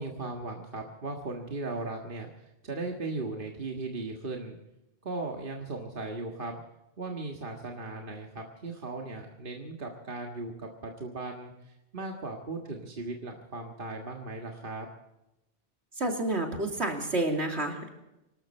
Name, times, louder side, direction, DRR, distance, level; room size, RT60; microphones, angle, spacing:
voice 1, 0.0-4.6 5.0-6.6 7.0-14.9, right 2 dB, 50° right, 1 dB, 1.8 m, -37 dB
voice 2, 16.0-17.9, right 2 dB, 70° right, 2 dB, 3.1 m, -29 dB
25.5 x 13.0 x 4.4 m, 0.92 s
omnidirectional pair, 1.2 m